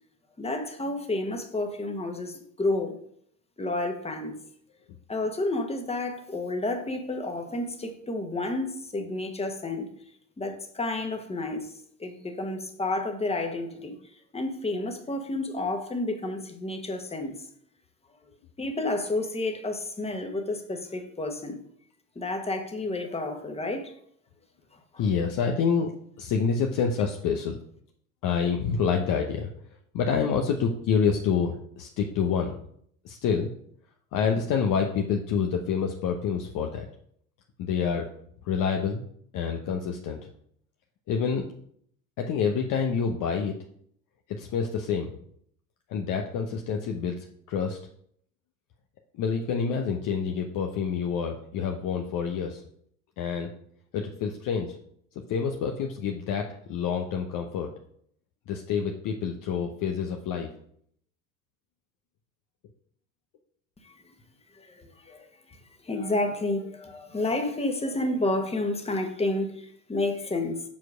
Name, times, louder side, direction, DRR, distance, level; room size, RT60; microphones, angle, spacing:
voice 1, 0.4-2.9 3.6-4.3 5.1-9.9 10.4-14.0 14.3-17.5 18.6-21.6 22.1-23.9 24.9-25.0 63.8-63.9 64.5-65.3 65.8-70.6, left 2 dB, 15° left, 1.5 m, -30 dB
voice 2, 25.0-25.9 26.2-27.6 28.2-29.5 29.9-32.6 33.0-33.5 34.1-36.9 37.6-38.1 38.4-39.0 39.3-40.2 41.1-41.5 42.2-43.5 44.4-45.1 45.9-47.1 47.5-47.8 49.1-52.6 53.2-53.5 53.9-54.8 55.3-57.7 58.5-60.5, left 6 dB, 50° left, 0.9 m, -27 dB
7.4 x 4.6 x 5.0 m
hypercardioid pair, 75°, 41 cm